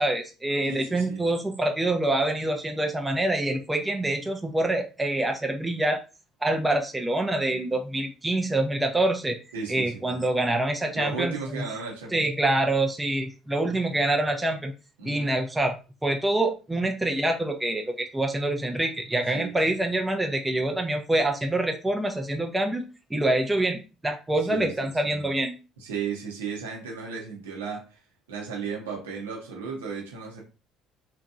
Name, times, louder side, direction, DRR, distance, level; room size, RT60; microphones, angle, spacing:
voice 1, 0.0-6.0 6.4-9.4 9.7-11.6 12.1-14.7 15.0-22.8 23.1-25.5, right 1 dB, 15° right, 0.5 m, -26 dB
voice 2, 0.7-1.2 9.5-10.2 10.9-12.3 15.0-15.4 19.3-19.5 24.5-25.3 25.8-28.0 28.3-30.4, right 5 dB, 85° right, 0.9 m, -35 dB
2.8 x 2.5 x 2.3 m
hypercardioid pair, 60°, 0 cm